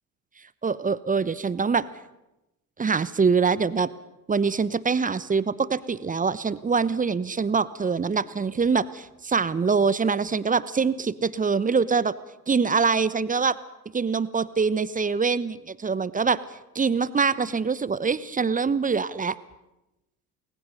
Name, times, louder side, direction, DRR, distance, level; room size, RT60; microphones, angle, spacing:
voice 1, 0.6-1.9 2.8-3.9 4.3-12.1 12.5-13.6 13.9-16.4 16.7-19.3, right 5 dB, 20° right, 18 dB, 0.9 m, -24 dB
29.0 x 21.0 x 5.5 m, 0.95 s
figure-of-eight pair, 60°, 45 cm